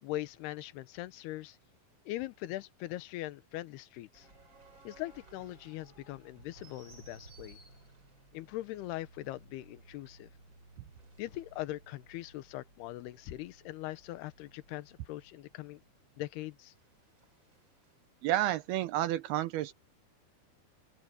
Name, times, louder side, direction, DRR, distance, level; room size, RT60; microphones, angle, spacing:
voice 1, 0.0-1.6 2.1-4.3 4.8-7.6 8.3-10.3 11.2-15.8 16.2-16.7, left 16 dB, 80° left, 2.9 m, -41 dB
sound 1, 4.1-18.0, right 2 dB, 30° right, 5.5 m, -59 dB
voice 2, 18.2-19.7, right 14 dB, 80° right, 2.7 m, -30 dB
open air
omnidirectional pair, 4.6 m